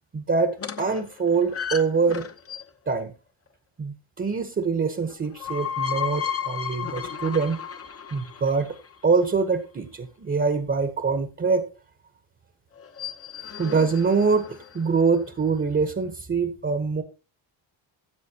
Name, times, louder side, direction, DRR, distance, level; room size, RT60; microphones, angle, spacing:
voice 1, 0.1-2.3 2.9-3.1 3.8-7.6 8.1-8.7 9.0-11.7 13.6-17.0, right 4 dB, 25° right, 8 dB, 1.0 m, -24 dB
sound 1, 0.6-2.9 5.1-9.1 12.8-15.0, left 8 dB, 30° left, 0.9 m, -34 dB
15.5 x 7.5 x 2.9 m, 0.32 s
cardioid pair, 145°, 46 cm